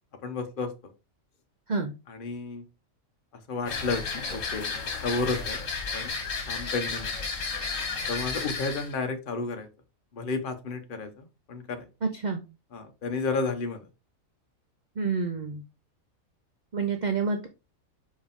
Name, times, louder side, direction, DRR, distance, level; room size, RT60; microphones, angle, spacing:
voice 1, 0.2-0.7 2.1-2.6 3.5-4.7 5.0-5.6 5.9-6.2 6.5-7.1 8.1-9.7 10.1-11.9 12.7-13.9, left 3 dB, 40° left, 6 dB, 1.1 m, -32 dB
sound 1, 3.7-8.9, left 4 dB, 65° left, 1.7 m, -33 dB
voice 2, 12.0-12.4 15.0-15.6 16.7-17.5, right 4 dB, 45° right, 5 dB, 0.7 m, -28 dB
5.3 x 4.9 x 3.6 m, 0.28 s
omnidirectional pair, 1.4 m